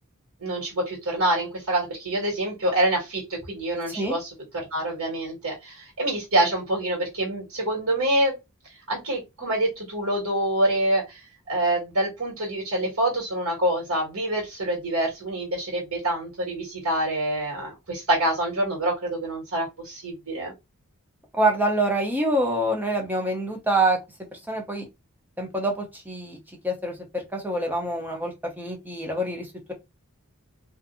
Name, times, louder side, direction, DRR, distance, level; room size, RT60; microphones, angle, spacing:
voice 1, 0.4-8.4 8.6-20.5, right 1 dB, 85° right, 1.5 m, -26 dB
voice 2, 21.4-24.0 24.5-24.8 25.4-26.4 26.6-29.7, right 1 dB, 10° right, 0.6 m, -26 dB
2.5 x 2.5 x 2.5 m
head